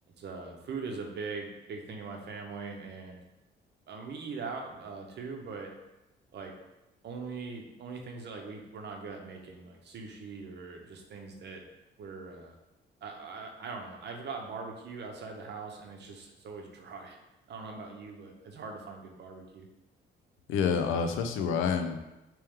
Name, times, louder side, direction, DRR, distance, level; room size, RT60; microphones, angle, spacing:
voice 1, 0.2-3.2 3.9-5.7 6.3-6.5 7.0-11.6 12.0-12.6 13.0-17.2 17.5-19.7, right 4 dB, 60° right, 2 dB, 0.7 m, -41 dB
voice 2, 20.5-22.0, left 6 dB, 90° left, 7 dB, 0.4 m, -28 dB
3.2 x 3.0 x 3.5 m, 0.97 s
cardioid pair, 90°, 20 cm